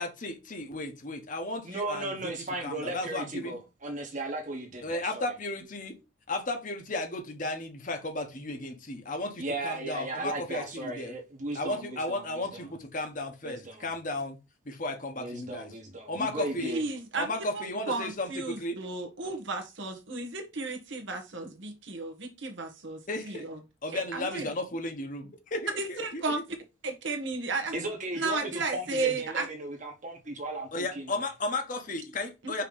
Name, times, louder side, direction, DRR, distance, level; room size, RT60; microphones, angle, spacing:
voice 1, 0.0-2.1 2.6-3.6 4.8-5.9 6.3-11.1 11.5-14.4 14.6-14.9 15.3-15.7 16.1-16.7 17.2-18.3 18.6-18.7 23.1-23.4 23.8-26.2 30.7-32.6, left 2 dB, 40° left, 1.1 m, -34 dB
voice 2, 1.6-5.3 9.4-12.7 13.4-13.9 15.2-16.9 27.7-31.2, right 2 dB, 40° right, 1.4 m, -36 dB
voice 3, 16.6-23.6 23.9-24.5 25.8-26.4 26.8-27.7 28.1-29.5 32.4-32.6, right 3 dB, 65° right, 1.3 m, -34 dB
5.7 x 3.1 x 5.5 m
head